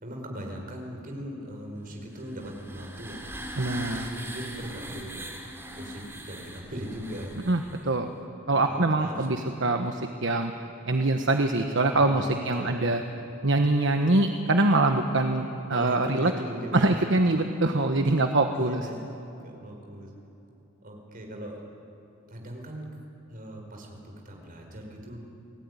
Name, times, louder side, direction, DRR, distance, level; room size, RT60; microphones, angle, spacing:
voice 1, 0.0-5.3 5.7-7.4 8.6-9.3 9.7-9.8 11.9-12.3 12.6-12.8 15.7-17.0 18.5-19.1 19.4-20.1 20.8-21.7 22.3-22.9 23.3-25.2, equal, 40° right, 1 dB, 5.0 m, -39 dB
sound 1, 2.1-7.9, right 1 dB, 10° right, 2.9 m, -40 dB
voice 2, 3.6-4.0 7.5-8.1 8.5-9.9 10.2-10.5 10.9-13.0 13.4-16.3 16.7-18.8, right 2 dB, 60° right, 5 dB, 1.3 m, -24 dB
29.5 x 19.0 x 9.7 m, 3.0 s
head